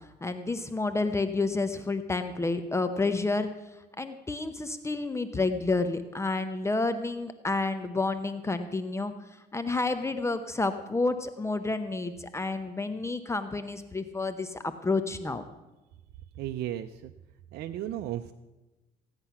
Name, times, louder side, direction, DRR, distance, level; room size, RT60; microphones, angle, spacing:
voice 1, 0.2-3.5 4.0-9.1 9.5-15.4, left 3 dB, 15° left, 9 dB, 0.8 m, -30 dB
voice 2, 16.4-17.1 17.5-18.3, right 12 dB, 75° right, 7 dB, 0.6 m, -34 dB
16.0 x 9.7 x 5.8 m, 1.1 s
cardioid pair, 110°, 17 cm